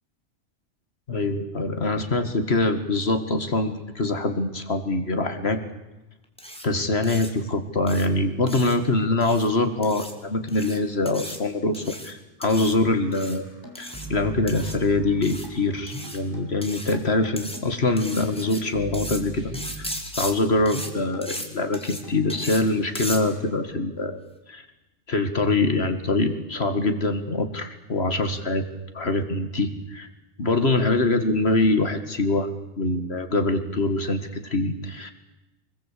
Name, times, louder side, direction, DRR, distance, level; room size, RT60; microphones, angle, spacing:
voice 1, 1.1-5.6 6.6-13.5 13.8-19.5 19.8-19.9 20.2-24.2 24.5-24.6 25.1-28.6 28.9-30.1 30.4-32.5 32.8-35.1, left 2 dB, 60° left, 8 dB, 2.2 m, -24 dB
sound 1, 6.4-6.6 7.0-7.3 7.9-8.1 8.5-8.7 9.2-9.5 9.8-10.1 10.5-10.8 11.0-11.4 11.7-12.1 12.4-12.7 13.1-13.4 13.7-14.1 14.5-14.7 15.2-15.5 15.9-16.2 16.6-17.0 17.4-17.6 18.0-18.6 18.9-19.2 19.5-20.3 20.6-20.9 21.2-21.5 21.7-22.0 22.3-22.6 22.9-23.2, equal, 5° left, 3.0 m, -36 dB
sound 2, 12.4-16.6 16.9-17.0 17.2-20.3 20.6-21.3 21.7-21.8 22.0-23.5, right 1 dB, 15° right, 3.9 m, -41 dB
25.5 x 20.5 x 8.5 m, 0.98 s
omnidirectional pair, 1.2 m